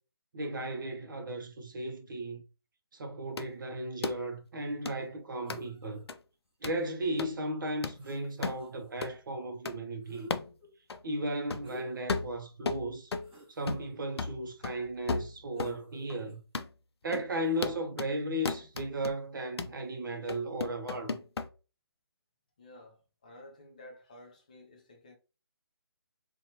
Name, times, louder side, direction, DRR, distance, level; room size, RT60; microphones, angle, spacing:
voice 1, 0.3-2.4 2.9-6.0 6.6-10.4 11.0-13.1 13.5-16.4 17.0-21.2, right 1 dB, 55° right, 0.5 m, -35 dB
sound 1, 3.4-3.5 4.0-4.2 4.9-5.0 5.5-5.6 6.1-6.2 6.6-6.8 7.2-7.3 7.8-8.0 8.4-8.6 9.0-9.2 9.7-9.8 10.3-10.5 10.9-11.0 11.5-11.7 12.1-13.3 13.7-13.9 14.2-15.8 16.1-16.2 16.5-16.7 17.1-17.3 17.6-18.1 18.5-19.1 19.6-19.8 20.3-21.5, left 4 dB, 85° left, 0.4 m, -35 dB
sound 2, 5.4-6.1 7.7-7.8 7.9-8.9 10.0-10.7 11.6-12.1 12.6-12.7 13.2-13.7 15.6-16.4 17.4-17.6, right 1 dB, 5° right, 1.1 m, -50 dB
voice 2, 22.6-25.2, left 1 dB, 20° left, 0.3 m, -53 dB
2.8 x 2.2 x 2.7 m
hypercardioid pair, 165°, 13 cm